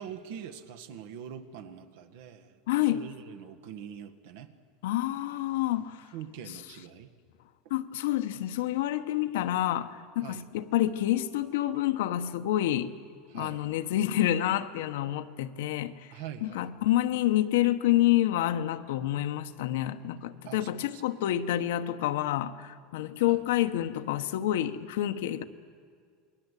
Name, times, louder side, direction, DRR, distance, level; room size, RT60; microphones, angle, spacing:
voice 1, 0.0-2.6 2.9-4.5 6.1-7.1 10.2-10.4 13.3-13.6 16.1-16.7 20.4-21.0 23.3-23.4, right 9 dB, 75° right, 8 dB, 1.7 m, -43 dB
voice 2, 2.7-3.0 4.8-6.0 6.4-6.6 7.7-12.9 13.3-15.9 16.4-25.4, left 13 dB, 90° left, 9 dB, 1.1 m, -28 dB
28.0 x 21.0 x 8.4 m, 2.1 s
supercardioid pair, 165°, 0 cm